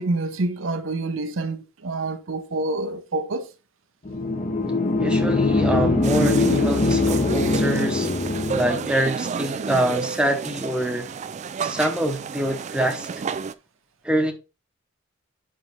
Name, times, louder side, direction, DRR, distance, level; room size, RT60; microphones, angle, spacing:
voice 1, 0.0-3.5, right 2 dB, 65° right, 0.7 m, -27 dB
sound 1, 4.1-9.0, left 3 dB, 35° left, 0.9 m, -22 dB
voice 2, 5.0-8.1 8.5-11.1 11.6-13.1 14.0-14.3, right 1 dB, 5° right, 0.9 m, -25 dB
sound 2, 6.0-13.5, right 6 dB, 35° right, 0.3 m, -31 dB
5.6 x 4.7 x 4.1 m
head